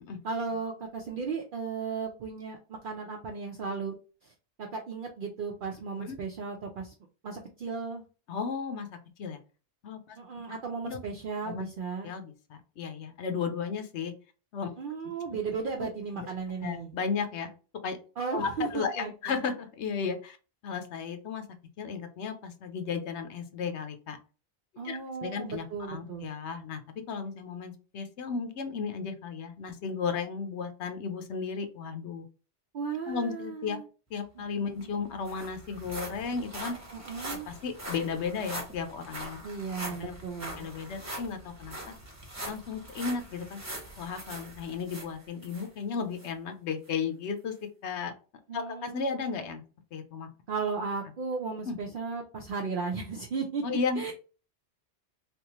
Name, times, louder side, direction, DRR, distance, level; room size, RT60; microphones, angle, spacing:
voice 1, 0.2-4.0 4.2-4.3 4.6-6.9 7.2-8.0 10.2-12.1 14.8-16.9 18.2-19.3 24.8-26.3 32.7-33.9 34.4-34.9 36.9-37.5 39.4-40.7 48.5-49.5 50.5-53.6 54.0-54.1, right 5 dB, 60° right, 1 dB, 0.6 m, -35 dB
voice 2, 8.3-9.4 9.8-10.2 10.8-11.0 11.5-11.7 12.0-14.1 14.5-14.7 16.2-16.3 16.6-17.5 17.8-18.0 18.3-20.4 20.6-21.4 21.8-24.2 24.8-32.2 33.1-33.8 34.1-36.8 37.5-39.4 39.8-40.1 40.6-41.9 42.4-43.6 44.0-47.5 47.8-48.1 48.5-49.6 49.9-50.3 51.7-51.8 53.6-54.1, left 5 dB, 80° left, 7 dB, 0.9 m, -34 dB
sound 1, 34.5-34.6 34.8-45.7 46.2-46.3 46.9-47.0, right 1 dB, 15° right, 0.8 m, -42 dB
3.4 x 2.4 x 2.9 m, 0.35 s
omnidirectional pair, 1.1 m